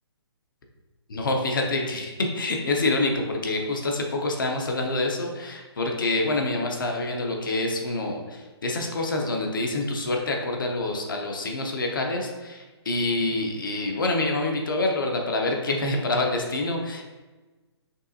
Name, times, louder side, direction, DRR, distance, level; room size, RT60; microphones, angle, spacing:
voice 1, 1.1-17.0, left 2 dB, 50° left, 1 dB, 0.7 m, -26 dB
5.3 x 3.2 x 2.6 m, 1.2 s
hypercardioid pair, 175°, 14 cm